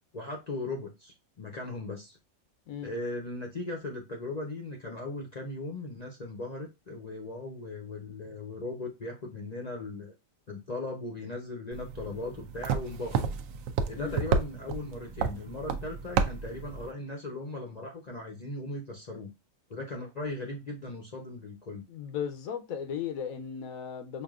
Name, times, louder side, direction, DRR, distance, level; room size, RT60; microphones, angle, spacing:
voice 1, 0.1-2.2 2.8-10.1 10.5-13.3 13.9-19.3 19.7-21.8, left 2 dB, 40° left, 0.6 m, -38 dB
sound 1, 11.7-16.9, right 6 dB, 75° right, 1.0 m, -31 dB
voice 2, 21.9-24.2, left 8 dB, 85° left, 1.1 m, -36 dB
5.1 x 2.7 x 2.4 m
omnidirectional pair, 1.4 m